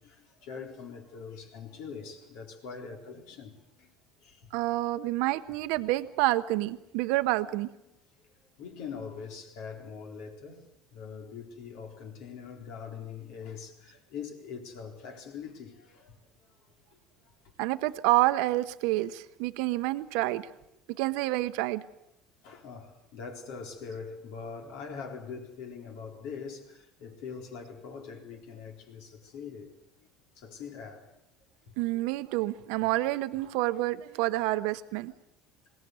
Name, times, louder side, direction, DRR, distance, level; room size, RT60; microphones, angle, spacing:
voice 1, 0.0-3.9 4.2-4.5 8.2-10.6 10.9-16.2 16.5-16.6 16.9-17.0 17.2-17.3 22.4-29.7 30.4-31.1 31.9-32.1 33.4-33.5, left 6 dB, 75° left, 3.9 m, -43 dB
voice 2, 4.5-7.7 17.6-20.5 21.0-21.8 31.8-35.1, right 18 dB, 80° right, 0.8 m, -28 dB
21.0 x 17.5 x 8.1 m
supercardioid pair, 115°, 0 cm